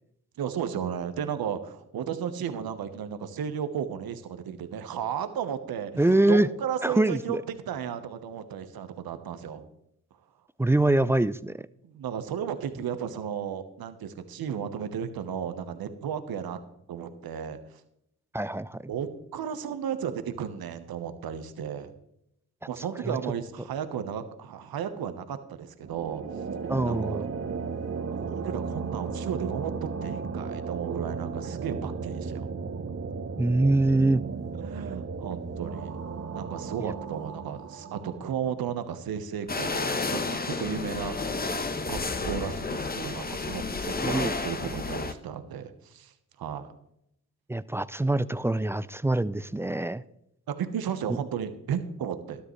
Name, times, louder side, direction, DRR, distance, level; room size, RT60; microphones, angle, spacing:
voice 1, 0.4-9.7 11.8-16.6 16.9-17.6 18.9-21.9 22.7-26.2 26.8-27.3 28.1-32.5 34.6-35.9 36.3-41.5 41.9-42.0 42.2-46.1 46.4-46.7 50.5-52.4, right 8 dB, 65° right, 1.2 m, -34 dB
voice 2, 6.0-6.5 6.8-7.4 10.6-11.5 18.3-18.9 23.0-23.2 26.7-27.2 33.4-34.2 36.8-36.9 44.0-44.3 47.5-50.0, right 2 dB, 5° right, 0.3 m, -24 dB
sound 1, 25.8-38.9, right 5 dB, 40° right, 1.0 m, -35 dB
sound 2, 39.5-45.1, left 3 dB, 25° left, 1.0 m, -31 dB
12.5 x 11.5 x 3.2 m
hypercardioid pair, 45°, 39 cm